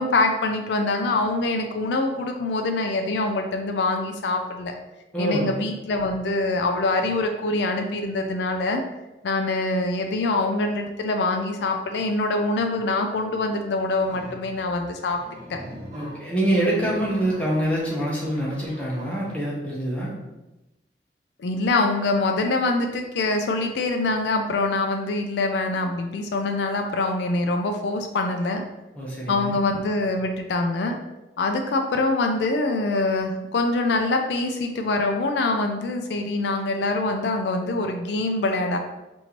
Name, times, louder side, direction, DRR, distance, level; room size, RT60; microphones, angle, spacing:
voice 1, 0.0-4.7 5.2-8.8 9.2-15.2 15.5-15.6 21.4-28.6 29.3-31.0 31.4-38.8, left 2 dB, 80° left, 4 dB, 0.4 m, -24 dB
voice 2, 5.1-5.5 15.9-20.1 29.0-29.6, right 1 dB, 5° left, -5 dB, 0.8 m, -25 dB
sound 1, 14.0-14.4 15.0-19.4, equal, 40° right, 1.3 m, -43 dB
4.3 x 2.6 x 2.9 m, 1.0 s
head